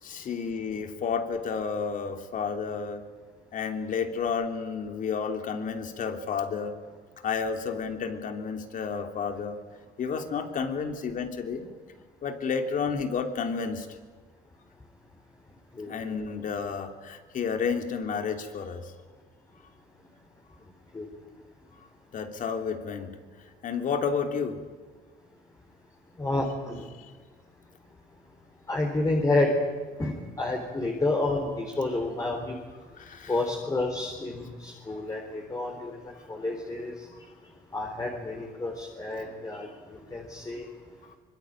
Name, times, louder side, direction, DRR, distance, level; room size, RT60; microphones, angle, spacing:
voice 1, 0.0-3.0 3.5-6.8 7.2-9.6 10.0-11.7 12.2-13.9 15.8-18.9 22.1-23.1 23.6-24.6 33.0-33.3, left 6 dB, 50° left, 6 dB, 3.2 m, -31 dB
voice 2, 26.2-26.9 28.7-29.5 30.0-32.6 33.3-37.1 37.7-39.7 40.1-40.7, left 2 dB, 20° left, 1 dB, 4.1 m, -29 dB
25.0 x 22.5 x 9.1 m, 1.4 s
cardioid pair, 110°, 17 cm